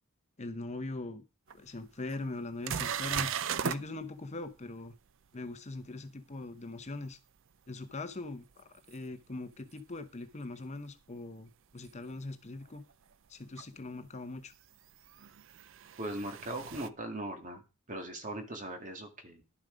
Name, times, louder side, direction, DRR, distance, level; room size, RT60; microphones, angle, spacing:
voice 1, 0.4-1.2 1.5-5.0 5.3-7.2 7.7-12.8 13.3-14.5, left 2 dB, 30° left, 8 dB, 0.8 m, -41 dB
sound 1, 1.5-1.6 2.1-2.2 2.6-3.8 8.9-9.0 11.8-11.9 13.6-13.7 15.0-16.9, right 8 dB, 65° right, 0.5 m, -36 dB
voice 2, 16.0-17.6 17.9-19.4, right 1 dB, 35° right, 5 dB, 2.1 m, -39 dB
11.0 x 7.2 x 5.1 m, 0.31 s
head